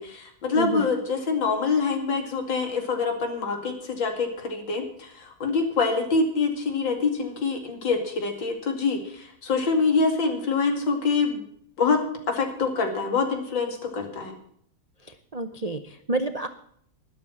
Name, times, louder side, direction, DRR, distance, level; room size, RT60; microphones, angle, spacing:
voice 1, 0.0-11.4 11.8-12.0 12.3-14.3, left 4 dB, 90° left, 5 dB, 3.1 m, -25 dB
voice 2, 0.5-0.9 15.0-16.5, right 2 dB, 60° right, 9 dB, 0.4 m, -29 dB
13.0 x 11.0 x 5.8 m, 0.65 s
omnidirectional pair, 2.0 m